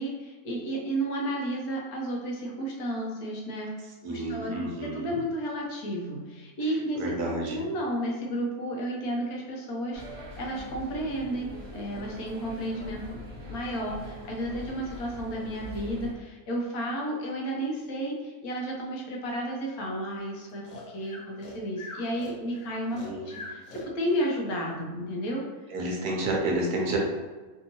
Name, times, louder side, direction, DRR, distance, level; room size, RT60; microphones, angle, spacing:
voice 1, 0.0-3.7 4.1-13.2 13.5-25.4, right 1 dB, 75° left, -2 dB, 1.2 m, -32 dB
voice 2, 4.0-5.2 6.9-7.6 22.9-23.5 25.7-27.0, right 2 dB, 80° right, -1 dB, 1.2 m, -30 dB
sound 1, 9.9-16.1, equal, 60° right, 0.7 m, -42 dB
Breathing, 20.6-24.3, left 2 dB, 45° left, 0.6 m, -43 dB
3.4 x 2.7 x 2.7 m, 1.3 s
omnidirectional pair, 1.6 m